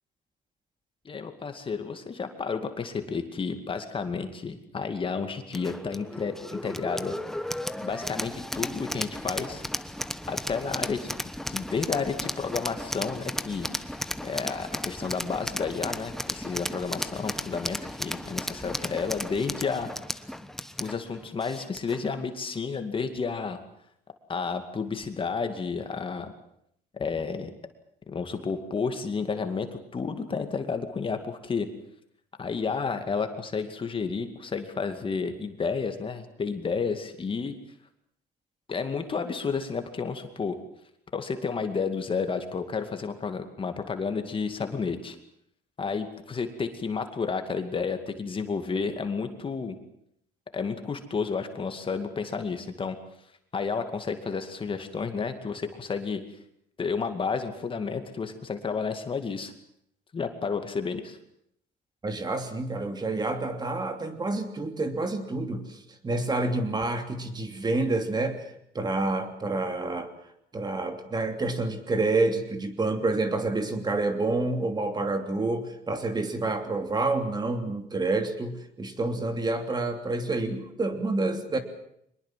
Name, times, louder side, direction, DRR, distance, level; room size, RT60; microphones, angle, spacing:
voice 1, 1.0-7.2 7.8-9.6 10.3-13.7 14.2-19.9 20.8-23.6 24.3-26.3 26.9-27.5 28.1-31.7 32.4-37.6 38.7-40.6 41.1-45.2 45.8-49.8 50.5-53.0 53.5-56.2 56.8-59.5 60.1-61.2, left 5 dB, 30° left, 7 dB, 2.3 m, -31 dB
sound 1, 5.5-22.1, left 1 dB, ahead, 1.1 m, -35 dB
voice 2, 62.0-68.4 68.7-70.1 70.5-81.6, right 2 dB, 25° right, 7 dB, 3.0 m, -28 dB
23.5 x 21.0 x 7.6 m, 0.73 s
cardioid pair, 110°, 17 cm